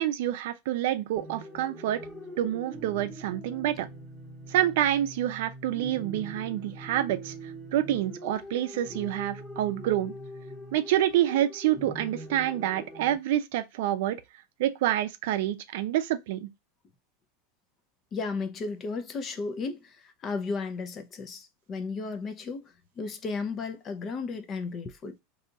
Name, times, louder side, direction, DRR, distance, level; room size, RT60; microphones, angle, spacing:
voice 1, 0.0-2.0 2.4-3.9 4.5-10.1 10.7-14.2 14.6-16.5, right 12 dB, 65° right, 0.5 m, -27 dB
sound 1, 1.2-13.2, right 1 dB, ahead, 0.9 m, -43 dB
voice 2, 18.1-19.8 20.2-22.6 23.0-25.2, left 4 dB, 25° left, 0.5 m, -34 dB
2.7 x 2.3 x 3.8 m
supercardioid pair, 160°, 0 cm